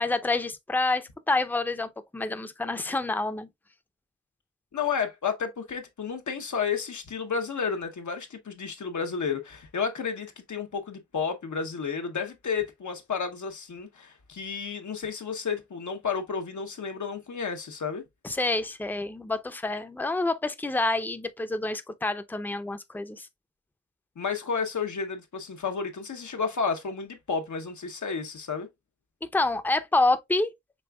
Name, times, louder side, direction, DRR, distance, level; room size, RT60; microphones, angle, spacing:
voice 1, 0.0-3.5 18.2-23.3 29.3-30.5, left 2 dB, 5° left, 0.5 m, -28 dB
voice 2, 4.7-18.0 24.2-28.7, left 6 dB, 85° left, 0.9 m, -31 dB
5.3 x 3.4 x 2.2 m
wide cardioid pair, 60°, 29 cm